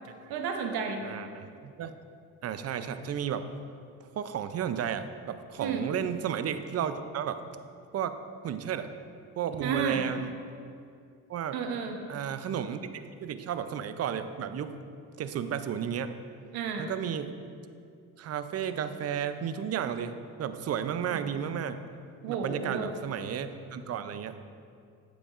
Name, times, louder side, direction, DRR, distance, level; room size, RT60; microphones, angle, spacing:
voice 1, 0.3-1.1 5.6-5.9 9.6-10.0 11.5-12.0 16.5-16.9 21.1-21.2 22.2-22.9, right 6 dB, 75° right, 4 dB, 0.9 m, -32 dB
voice 2, 1.0-1.9 2.4-3.5 4.2-7.4 7.9-8.2 8.4-8.9 9.4-10.3 11.3-11.6 12.1-14.7 15.2-16.1 16.8-17.3 18.2-21.8 22.3-24.5, right 8 dB, 40° right, 11 dB, 0.5 m, -33 dB
8.5 x 7.1 x 2.5 m, 2.4 s
cardioid pair, 85°, 39 cm